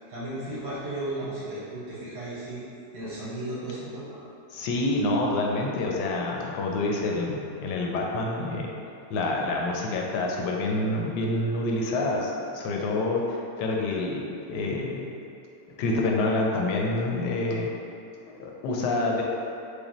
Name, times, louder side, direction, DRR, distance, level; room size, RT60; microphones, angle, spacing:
voice 1, 0.1-2.6 2.9-4.2, right 1 dB, 75° right, -10 dB, 1.5 m, -35 dB
voice 2, 4.5-8.7 9.1-13.2 13.6-15.0 15.8-17.7 18.3-19.2, left 2 dB, 80° left, -1 dB, 1.2 m, -27 dB
4.9 x 2.2 x 3.0 m, 2.6 s
omnidirectional pair, 1.8 m